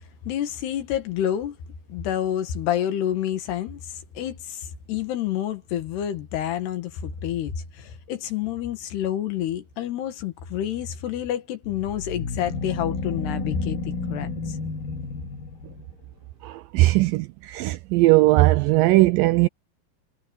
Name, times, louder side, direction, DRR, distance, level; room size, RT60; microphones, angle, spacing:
voice 1, 0.3-1.6 1.9-3.8 4.2-14.6, left 10 dB, 85° left, 4.0 m, -28 dB
sound 1, 11.6-16.0, left 3 dB, 70° left, 6.3 m, -31 dB
voice 2, 16.4-19.5, right 19 dB, 80° right, 2.0 m, -19 dB
omnidirectional pair, 4.6 m